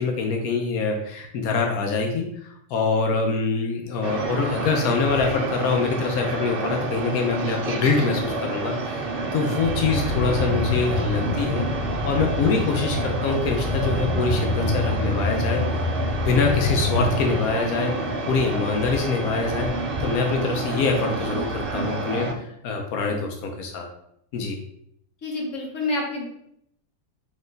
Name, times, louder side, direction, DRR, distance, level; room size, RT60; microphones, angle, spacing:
voice 1, 0.0-11.7 12.0-15.9 16.2-23.9 24.3-24.6, left 4 dB, 85° left, 3 dB, 1.1 m, -25 dB
sound 1, 4.0-22.3, right 3 dB, 55° right, 0.6 m, -29 dB
sound 2, 9.6-17.5, left 2 dB, 5° right, 0.8 m, -27 dB
voice 2, 25.2-26.3, left 2 dB, 60° left, -2 dB, 1.4 m, -28 dB
4.2 x 3.0 x 3.9 m, 0.73 s
omnidirectional pair, 1.5 m